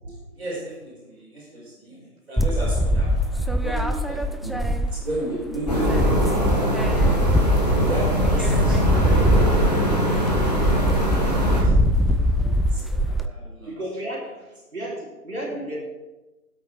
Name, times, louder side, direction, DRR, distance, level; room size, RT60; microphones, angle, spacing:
voice 1, 0.0-4.6 4.9-6.5 7.8-11.7 12.0-13.7, right 1 dB, 40° right, -6 dB, 4.6 m, -35 dB
sound 1, 2.4-5.2 5.5-13.3, equal, ahead, 0.4 m, -22 dB
sound 2, 5.7-11.6, equal, 25° left, 1.6 m, -22 dB
voice 2, 13.7-15.8, right 1 dB, 60° right, -9 dB, 3.7 m, -33 dB
14.0 x 8.5 x 4.7 m, 1.1 s
figure-of-eight pair, 165°, 47 cm